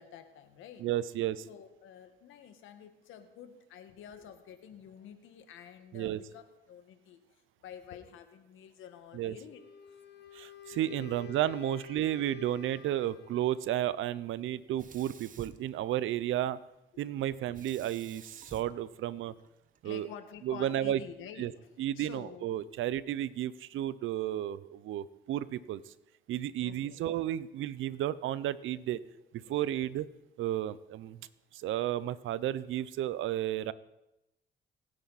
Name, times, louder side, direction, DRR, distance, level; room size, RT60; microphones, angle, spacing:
voice 1, 0.0-0.9 1.4-7.2 7.6-9.6 9.9-10.0 11.0-11.1 11.9-12.1 19.8-21.7 22.0-22.6 26.6-27.0 29.4-29.5, left 9 dB, 85° left, 8 dB, 1.7 m, -49 dB
voice 2, 0.8-1.5 5.9-6.2 9.1-9.3 10.3-16.6 17.0-19.3 19.8-20.1 20.4-21.0 21.4-21.5 21.8-25.9 26.3-29.0 29.5-30.1 30.4-31.2 31.5-33.7, right 12 dB, 80° right, 17 dB, 0.7 m, -32 dB
Wind instrument woodwind instrument, 9.5-13.8, left 7 dB, 60° left, 1.7 m, -49 dB
Sink (filling or washing), 14.7-16.4 17.5-19.8, right 6 dB, 40° right, 1.0 m, -51 dB
28.5 x 9.8 x 4.2 m, 0.91 s
cardioid pair, 90°, 20 cm